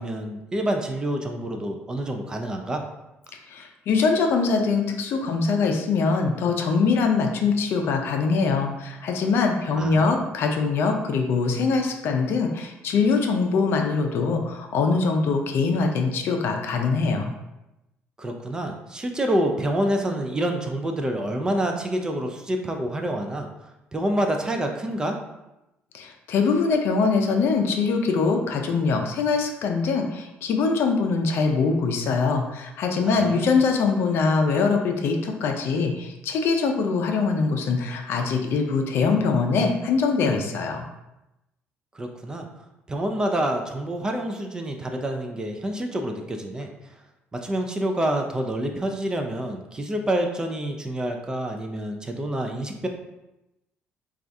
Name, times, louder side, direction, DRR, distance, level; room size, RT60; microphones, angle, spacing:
voice 1, 0.0-2.9 9.7-10.2 18.2-23.5 23.9-25.2 33.0-33.6 41.9-42.5 42.9-46.7 47.3-52.9, right 1 dB, 15° right, 3 dB, 0.4 m, -27 dB
voice 2, 3.5-17.3 25.9-40.9, left 4 dB, 65° left, 3 dB, 0.5 m, -23 dB
4.4 x 2.4 x 2.6 m, 0.94 s
cardioid pair, 135°, 4 cm